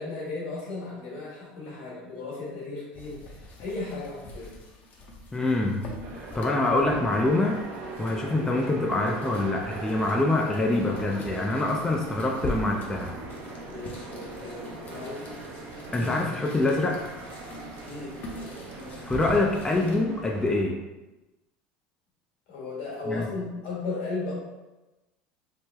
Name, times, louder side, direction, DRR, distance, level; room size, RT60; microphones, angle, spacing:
voice 1, 0.0-4.6 13.7-15.3 17.8-18.1 22.5-24.3, left 3 dB, 75° left, -5 dB, 1.5 m, -35 dB
sound 1, 2.9-20.0, left 1 dB, 45° left, 0.7 m, -43 dB
voice 2, 5.3-5.8 6.2-7.7 8.0-13.1 15.9-17.0 19.0-20.8 23.1-23.3, left 2 dB, 15° left, 0 dB, 0.4 m, -25 dB
sound 2, 6.0-20.6, right 2 dB, 55° right, 0.6 m, -40 dB
3.3 x 2.1 x 3.3 m, 1.1 s
supercardioid pair, 105°, 4 cm